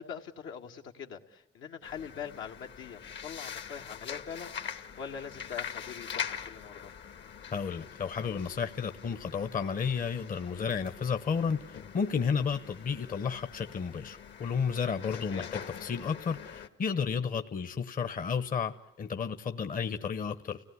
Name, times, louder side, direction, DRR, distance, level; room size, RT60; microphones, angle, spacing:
voice 1, 0.0-6.9 15.3-15.5, left 7 dB, 80° left, 2 dB, 1.9 m, -43 dB
sound 1, 1.8-16.7, left 8 dB, 65° left, 1.8 m, -43 dB
voice 2, 7.5-20.6, left 6 dB, 45° left, 9 dB, 1.0 m, -32 dB
29.5 x 17.5 x 9.7 m, 0.98 s
cardioid pair, 90°, 20 cm